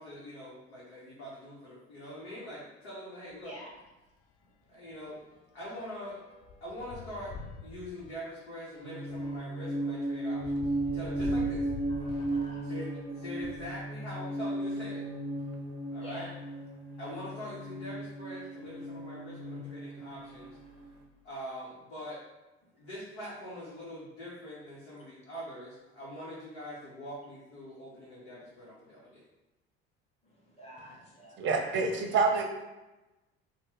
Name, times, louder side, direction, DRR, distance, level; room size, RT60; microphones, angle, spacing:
voice 1, 0.0-3.5 4.7-5.2 5.5-6.2 6.6-7.3 7.6-11.7 12.1-12.2 12.5-15.0 15.9-16.3 17.0-20.6 21.2-22.2 22.7-29.2, equal, 80° left, -8 dB, 0.9 m, -43 dB
sound 1, 3.3-3.5 3.9-4.0 4.3-13.8 14.5-15.8 16.5-16.6 16.9-17.0 18.7-18.8 19.4-19.7 20.1-21.3, left 4 dB, 45° left, 0.5 m, -47 dB
voice 2, 3.4-3.7 4.6-4.8 11.9-12.7 16.0-16.3 30.2-31.9, equal, 20° left, -4 dB, 1.1 m, -50 dB
sound 2, 8.8-20.8, right 1 dB, 75° right, 0.5 m, -35 dB
voice 3, 31.4-32.4, right 4 dB, 35° right, 2 dB, 0.6 m, -27 dB
2.8 x 2.1 x 3.3 m, 1.0 s
hypercardioid pair, 65°, 34 cm